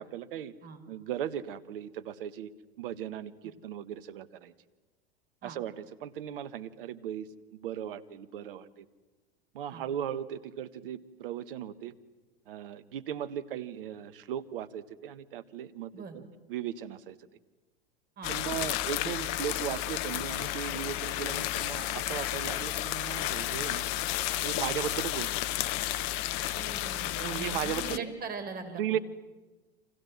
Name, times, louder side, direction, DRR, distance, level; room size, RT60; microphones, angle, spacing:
voice 1, 0.1-0.5 0.9-2.5 2.8-4.5 5.4-8.8 9.5-11.9 12.5-16.2 16.5-17.2 18.3-23.8 24.4-25.3 27.2-28.0 28.7-29.0, right 10 dB, 60° right, 14 dB, 1.5 m, -37 dB
sound 1, 18.2-28.0, left 15 dB, 45° left, 1.1 m, -32 dB
voice 2, 26.5-29.0, right 4 dB, 30° right, 8 dB, 5.1 m, -41 dB
29.5 x 26.5 x 7.5 m, 1.2 s
figure-of-eight pair, 85°, 31 cm